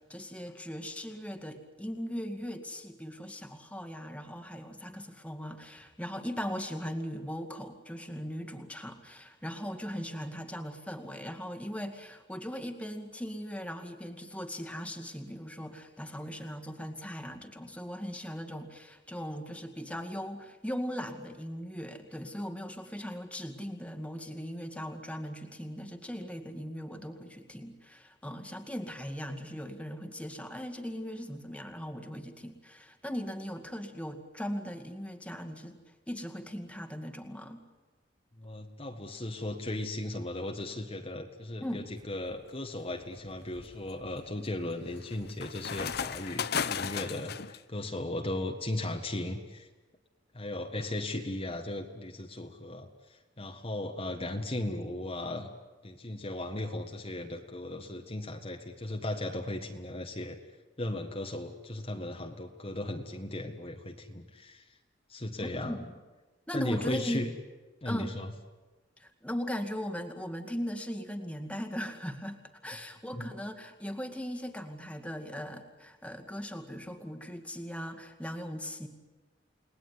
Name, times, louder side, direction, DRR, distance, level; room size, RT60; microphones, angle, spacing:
voice 1, 0.0-35.8 36.1-37.6 41.6-41.9 65.4-65.9 66.5-67.3 67.8-68.1 69.0-78.9, equal, 5° left, 6 dB, 2.2 m, -39 dB
voice 2, 38.4-49.7 50.3-55.5 55.8-60.4 60.8-64.6 65.1-65.8 66.5-67.3 67.8-68.3 73.2-73.3, left 1 dB, 30° left, 3 dB, 1.7 m, -36 dB
sound 1, 42.0-42.4 43.0-47.6, left 6 dB, 60° left, 0.8 m, -36 dB
29.5 x 19.5 x 9.8 m, 1.2 s
head